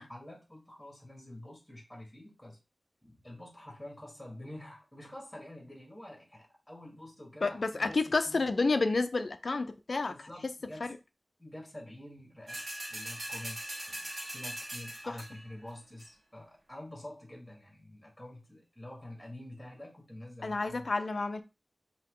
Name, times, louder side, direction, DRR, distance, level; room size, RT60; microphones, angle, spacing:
voice 1, 0.0-2.6 3.0-8.0 8.2-8.5 10.1-10.9 11.4-12.6 12.9-14.1 14.3-20.9, left 1 dB, 10° left, -1 dB, 1.6 m, -47 dB
voice 2, 7.4-10.1 10.4-10.5 20.4-21.4, left 3 dB, 70° left, 10 dB, 0.5 m, -30 dB
sound 1, 12.5-15.5 16.0-16.1, right 1 dB, 65° right, 1.4 m, -41 dB
4.6 x 2.8 x 3.7 m, 0.28 s
wide cardioid pair, 80°, 0 cm